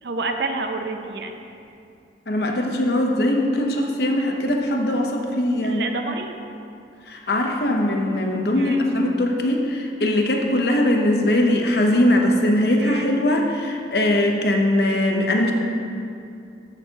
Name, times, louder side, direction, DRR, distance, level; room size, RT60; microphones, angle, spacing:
voice 1, 0.0-1.4 5.6-6.4 8.6-8.9 12.8-13.1, right 3 dB, 75° right, 5 dB, 0.7 m, -29 dB
voice 2, 2.3-5.9 7.1-15.5, left 1 dB, 60° left, 2 dB, 0.8 m, -21 dB
13.0 x 6.9 x 2.9 m, 2.6 s
head